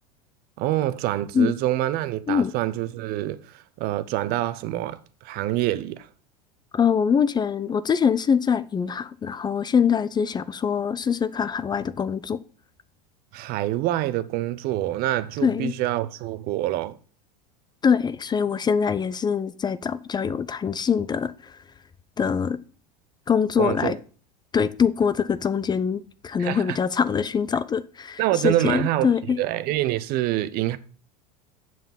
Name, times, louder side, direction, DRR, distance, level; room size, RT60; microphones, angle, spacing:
voice 1, 0.6-6.1 13.3-17.0 23.6-23.9 26.4-26.8 28.2-29.1 29.4-30.8, right 14 dB, 45° right, 0.7 m, -26 dB
voice 2, 6.7-12.4 15.4-15.7 17.8-21.6 22.2-22.6 23.3-24.0 24.5-29.4, left 6 dB, 20° left, 0.5 m, -23 dB
7.6 x 7.0 x 5.6 m
hypercardioid pair, 85°, 21 cm